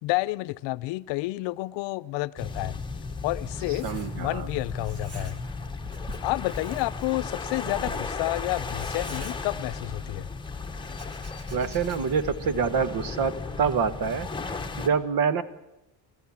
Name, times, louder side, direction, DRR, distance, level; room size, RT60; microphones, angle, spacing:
voice 1, 0.0-2.8 3.2-3.9 4.2-5.4 6.2-10.3, left 21 dB, 80° left, 17 dB, 0.7 m, -30 dB
sound 1, 2.4-14.9, left 4 dB, 10° left, 1.4 m, -35 dB
Writing, 3.5-4.5 4.7-5.6 5.8-10.0 10.6-12.3, right 1 dB, 35° right, 2.6 m, -46 dB
voice 2, 3.8-4.5 11.5-14.3 14.8-15.4, right 6 dB, 50° right, 13 dB, 1.4 m, -26 dB
29.0 x 14.0 x 7.2 m, 0.93 s
cardioid pair, 120°, 43 cm